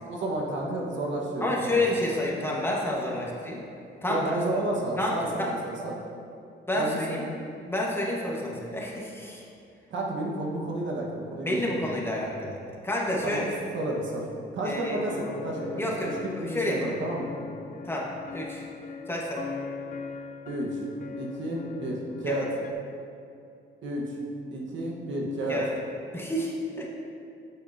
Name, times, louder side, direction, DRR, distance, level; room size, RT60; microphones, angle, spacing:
voice 1, 0.1-1.8 4.1-6.0 6.7-7.2 9.9-11.9 13.2-13.4 13.7-14.3 14.5-15.9 16.4-17.3 20.5-20.8 21.2-22.5 23.8-24.2 24.5-25.6, right 1 dB, 70° right, -2 dB, 1.4 m, -31 dB
voice 2, 1.4-3.6 4.0-4.2 5.0-5.5 6.7-7.2 7.7-9.4 11.4-13.7 14.6-15.0 15.8-16.1 16.4-16.9 17.8-18.6 19.1-19.4 22.3-22.4 25.5-25.7 26.1-26.9, left 1 dB, 10° left, -3 dB, 1.4 m, -29 dB
sound 1, 15.1-22.7, left 5 dB, 40° left, 0.5 m, -40 dB
8.8 x 6.9 x 2.8 m, 2.5 s
cardioid pair, 90°, 20 cm